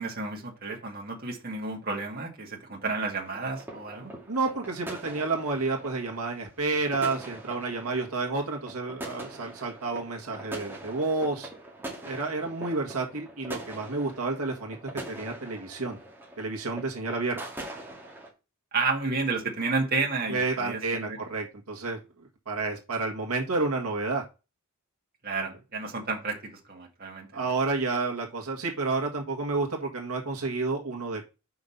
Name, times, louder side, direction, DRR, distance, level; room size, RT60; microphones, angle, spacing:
voice 1, 0.0-4.1 18.7-21.2 25.2-27.5, right 3 dB, 45° right, -1 dB, 2.1 m, -31 dB
sound 1, 3.2-18.3, right 1 dB, 10° right, 2.2 m, -43 dB
voice 2, 4.3-11.5 12.0-14.8 15.1-16.0 16.4-17.4 20.3-22.0 22.5-24.2 27.3-31.3, right 3 dB, 80° right, 1 dB, 1.8 m, -30 dB
5.8 x 5.3 x 5.7 m, 0.29 s
head